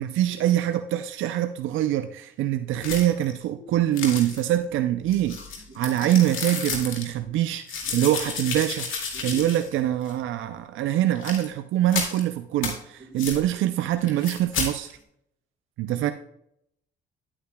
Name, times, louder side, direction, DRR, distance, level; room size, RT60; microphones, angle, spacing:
voice 1, 0.0-5.4 5.7-8.9 9.2-14.9 15.8-16.1, right 12 dB, 80° right, 9 dB, 0.5 m, -24 dB
sound 1, 2.8-3.3 3.9-4.6 5.1-7.1 7.7-9.8 10.1-10.2 11.1-11.5 11.9-12.2 12.6-12.7 13.2-13.4 14.0-14.7, left 5 dB, 80° left, 2.2 m, -32 dB
voice 2, 5.7-6.1 7.9-8.0 9.1-9.4 13.0-13.3, right 1 dB, 30° right, 4 dB, 1.9 m, -44 dB
11.0 x 8.7 x 2.3 m, 0.74 s
cardioid pair, 90°, 20 cm